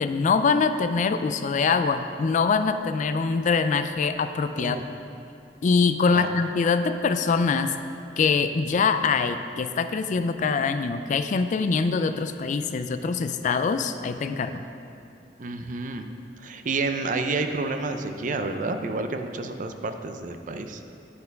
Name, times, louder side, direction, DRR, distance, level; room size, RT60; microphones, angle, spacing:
voice 1, 0.0-4.8 5.6-7.7 8.2-14.6, left 5 dB, 45° left, 10 dB, 0.3 m, -24 dB
voice 2, 15.4-16.1 16.4-20.8, right 3 dB, 45° right, 7 dB, 0.5 m, -29 dB
10.5 x 4.3 x 5.2 m, 2.6 s
head